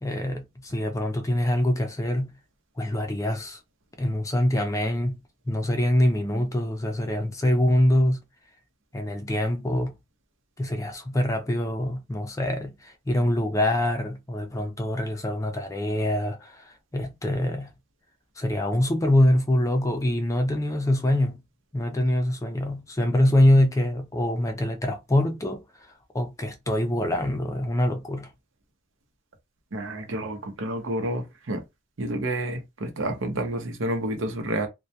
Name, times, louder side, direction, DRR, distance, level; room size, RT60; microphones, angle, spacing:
voice 1, 0.0-2.3 2.8-3.6 4.0-8.3 8.9-10.0 10.6-17.8 18.4-21.5 21.7-25.6 26.1-28.3, left 1 dB, 15° left, 0.4 m, -24 dB
voice 2, 29.7-31.6 32.0-34.7, right 1 dB, 80° right, 0.7 m, -29 dB
2.2 x 2.2 x 2.7 m
head